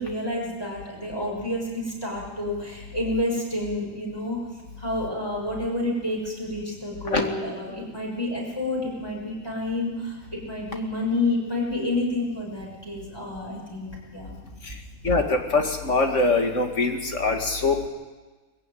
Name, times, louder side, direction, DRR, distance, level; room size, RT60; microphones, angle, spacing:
voice 1, 0.0-4.4 4.8-14.4, left 2 dB, 15° left, -3 dB, 6.5 m, -29 dB
voice 2, 15.0-17.9, left 3 dB, 55° left, 3 dB, 2.5 m, -23 dB
21.0 x 15.0 x 9.3 m, 1.3 s
omnidirectional pair, 1.5 m